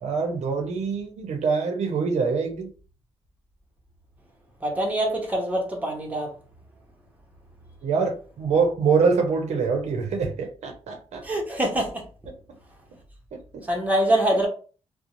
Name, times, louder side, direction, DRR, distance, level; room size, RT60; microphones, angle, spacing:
voice 1, 0.0-2.7 7.8-11.2 12.3-12.4 13.3-13.6, right 5 dB, 80° right, 0.6 m, -25 dB
voice 2, 4.6-6.3 11.2-12.0 13.6-14.5, right 1 dB, 15° right, 0.8 m, -24 dB
2.5 x 2.0 x 2.9 m
wide cardioid pair, 125°, 11 cm